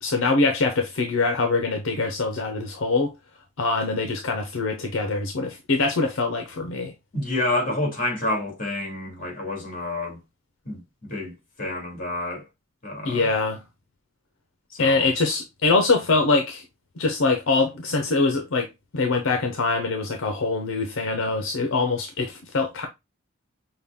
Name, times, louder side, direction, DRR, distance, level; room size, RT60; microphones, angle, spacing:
voice 1, 0.0-3.1 3.6-6.9 13.0-13.6 14.8-16.6 17.0-22.9, left 3 dB, 75° left, 0.6 m, -23 dB
voice 2, 7.1-10.2 10.6-12.5 12.8-13.3 14.7-15.1, left 1 dB, 45° left, 2.1 m, -29 dB
5.7 x 2.2 x 3.4 m
head